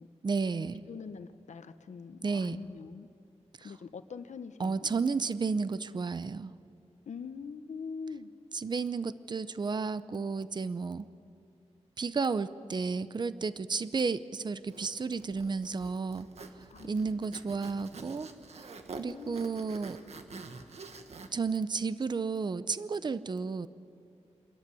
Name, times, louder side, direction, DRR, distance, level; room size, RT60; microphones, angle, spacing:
voice 1, 0.2-0.8 2.2-2.6 4.6-6.5 8.5-11.1 12.0-16.3 16.8-18.3 18.5-18.7 19.0-20.0 21.3-23.7, right 4 dB, 40° right, 14 dB, 0.6 m, -32 dB
voice 2, 0.9-3.1 3.6-4.9 7.1-8.3 16.7-17.2 19.0-19.5, left 5 dB, 80° left, 10 dB, 1.1 m, -43 dB
Zipper (clothing), 14.7-21.3, right 3 dB, 65° right, 1.4 m, -47 dB
25.0 x 14.0 x 9.8 m, 2.5 s
wide cardioid pair, 145°, 12 cm